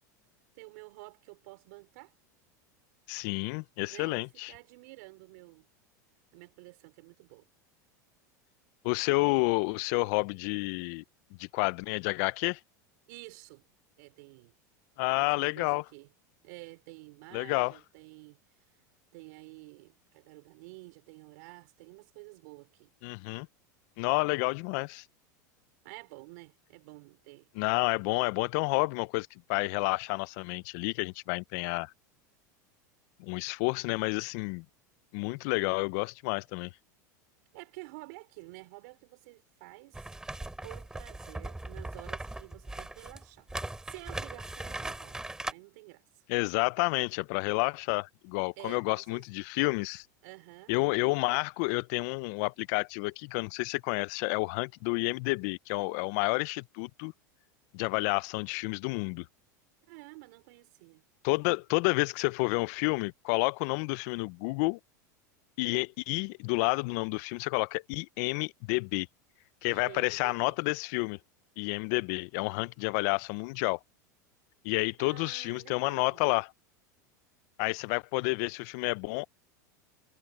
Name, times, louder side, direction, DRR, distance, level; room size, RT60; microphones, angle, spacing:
voice 1, 0.5-2.1 3.9-5.7 6.3-7.5 13.1-13.6 14.0-14.5 15.1-16.1 16.4-18.4 19.1-22.9 25.8-27.5 37.5-40.1 40.6-43.5 43.8-45.2 45.5-46.2 48.6-49.2 50.2-50.7 59.9-61.0 69.7-70.6 75.0-76.2, right 25 dB, 70° right, 5.0 m, -50 dB
voice 2, 3.1-4.5 8.8-11.0 11.4-12.6 15.0-15.8 17.3-17.8 23.0-23.5 24.0-25.0 27.6-31.9 33.2-34.6 35.1-36.7 46.3-50.0 50.7-57.1 57.7-59.3 61.2-64.8 65.6-69.1 69.6-71.2 71.6-73.8 74.6-76.5 77.6-79.3, left 27 dB, 60° left, 0.5 m, -30 dB
sound 1, 39.9-45.5, right 2 dB, 5° right, 6.4 m, -39 dB
supercardioid pair, 110°, 10 cm